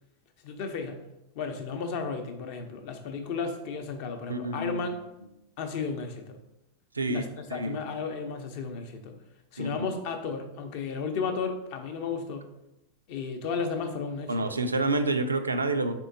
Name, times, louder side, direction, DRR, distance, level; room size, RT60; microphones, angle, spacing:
voice 1, 0.4-1.0 1.3-4.9 5.6-6.4 7.0-9.1 9.5-12.5 13.1-14.5, left 5 dB, 50° left, 5 dB, 0.6 m, -33 dB
voice 2, 4.3-4.9 6.9-7.2 7.5-7.8 9.6-9.9 14.3-15.9, right 2 dB, 85° right, 8 dB, 0.3 m, -28 dB
4.3 x 3.5 x 2.6 m, 0.89 s
figure-of-eight pair, 90°, 0 cm